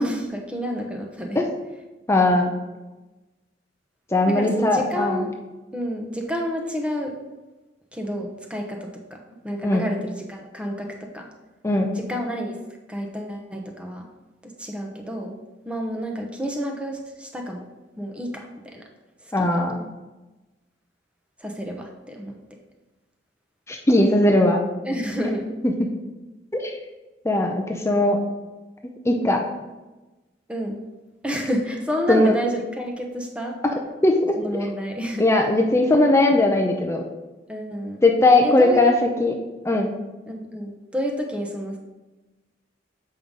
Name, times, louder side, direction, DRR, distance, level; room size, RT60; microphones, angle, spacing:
voice 1, 0.0-1.4 4.3-5.4 5.7-7.2 7.9-9.2 9.4-11.3 11.9-12.6 12.9-14.1 14.4-15.4 15.6-17.6 18.0-18.9 19.2-19.5 21.4-22.4 24.8-25.5 30.5-30.8 31.2-33.6 34.4-35.3 37.5-38.0 38.4-39.0 40.3-41.8, equal, 5° right, 1 dB, 0.9 m, -29 dB
voice 2, 2.1-2.6 4.1-5.2 9.6-9.8 11.6-11.9 19.3-19.7 23.7-24.6 25.6-25.7 26.5-26.7 27.2-28.2 29.0-29.4 32.1-32.3 34.0-34.4 35.2-37.0 38.0-39.3 39.6-39.9, left 2 dB, 15° left, 2 dB, 0.6 m, -19 dB
7.6 x 5.4 x 3.7 m, 1.1 s
head